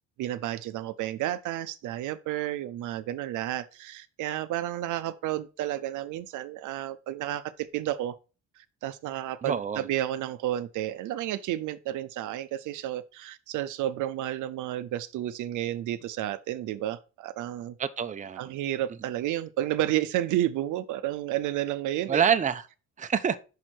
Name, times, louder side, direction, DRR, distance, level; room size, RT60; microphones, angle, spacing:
voice 1, 0.2-8.2 8.6-17.7 18.4-22.2, right 13 dB, 85° right, 0.5 m, -31 dB
voice 2, 9.4-9.8 17.8-18.6 22.1-22.6 23.0-23.4, right 7 dB, 25° right, 0.5 m, -26 dB
5.6 x 4.5 x 4.3 m
cardioid pair, 90°, 30 cm